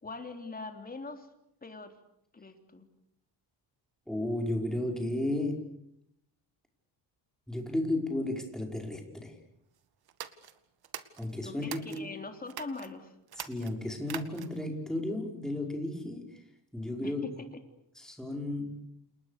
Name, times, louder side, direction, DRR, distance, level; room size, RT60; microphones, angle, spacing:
voice 1, 0.0-1.3 1.6-1.9 2.3-2.9 11.4-13.2 17.0-17.1, left 3 dB, 20° left, 6 dB, 3.5 m, -42 dB
voice 2, 4.1-5.6 7.5-9.4 11.2-12.1 13.4-16.4 16.7-17.4 18.0-18.8, left 1 dB, ahead, 2 dB, 5.4 m, -33 dB
sound 1, 10.1-12.0 12.5-12.9 13.3-14.7, right 9 dB, 55° right, 2.1 m, -44 dB
29.5 x 29.0 x 6.8 m, 0.77 s
cardioid pair, 145°, 45 cm